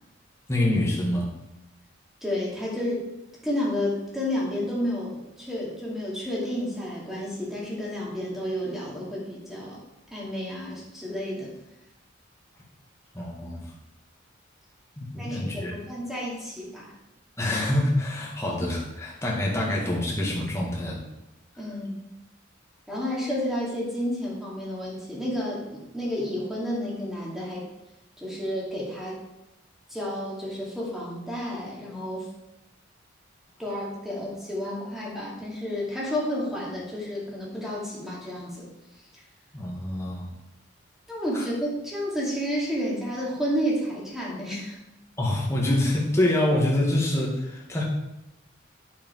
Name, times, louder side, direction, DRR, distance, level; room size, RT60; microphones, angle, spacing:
voice 1, 0.5-1.3 13.1-13.7 15.0-15.8 17.4-21.0 39.5-40.3 41.3-41.5 45.2-47.8, left 1 dB, 15° left, -3 dB, 1.8 m, -26 dB
voice 2, 2.2-3.0 3.4-9.8 10.1-11.5 15.2-16.9 21.6-22.0 22.9-27.7 28.2-29.2 29.9-32.3 33.6-38.6 41.1-44.8, equal, ahead, -5 dB, 2.4 m, -31 dB
8.5 x 7.0 x 4.6 m, 0.92 s
head